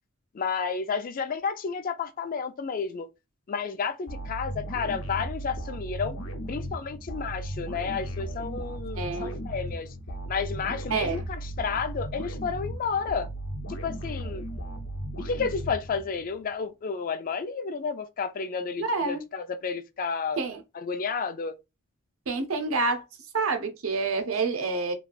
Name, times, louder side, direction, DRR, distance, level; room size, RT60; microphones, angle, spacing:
voice 1, 0.3-3.1 3.5-6.2 6.5-9.9 10.3-13.3 13.8-14.5 15.2-20.4 20.7-21.6, left 5 dB, 40° left, 0.4 m, -31 dB
sound 1, 4.1-16.3, right 1 dB, 75° left, 0.8 m, -36 dB
voice 2, 9.0-9.4 10.9-11.2 18.8-19.2 20.4-20.6 22.3-23.0 23.3-24.9, right 4 dB, 80° right, 0.7 m, -28 dB
3.1 x 2.3 x 2.5 m
head